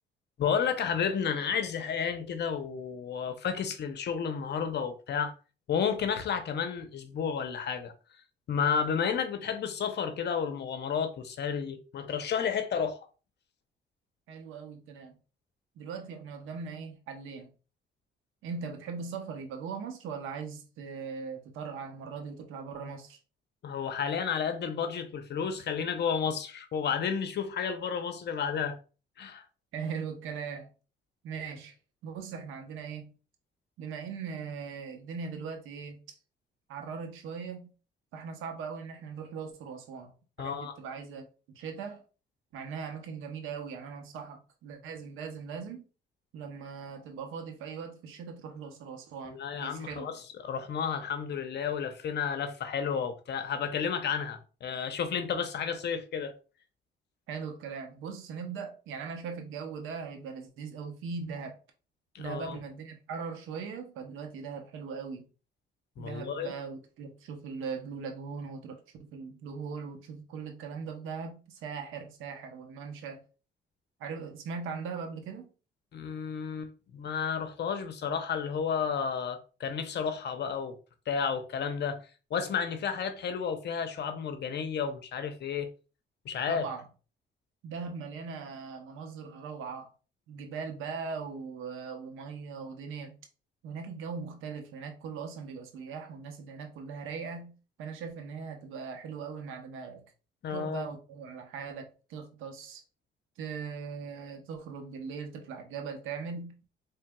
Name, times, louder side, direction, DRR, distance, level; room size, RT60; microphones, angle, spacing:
voice 1, 0.4-5.3 5.7-7.9 8.5-13.0 23.6-28.8 29.2-29.4 40.4-40.7 49.3-56.4 62.1-62.6 66.0-66.5 75.9-80.7 81.1-82.0 82.3-85.7 86.2-86.6 100.4-100.9, left 7 dB, 60° left, 0.7 m, -32 dB
voice 2, 14.3-15.2 15.8-17.5 18.4-23.2 29.7-30.7 31.2-31.8 32.0-33.1 33.8-36.2 36.7-37.7 38.1-41.3 41.5-42.0 42.5-45.8 46.3-50.1 57.3-61.6 62.2-65.3 66.0-73.2 74.0-75.5 86.5-86.9 87.6-89.9 90.3-93.2 93.6-100.0 100.5-102.8 103.4-106.5, right 5 dB, 90° right, 0.8 m, -40 dB
4.4 x 3.2 x 2.3 m
cardioid pair, 90°, 20 cm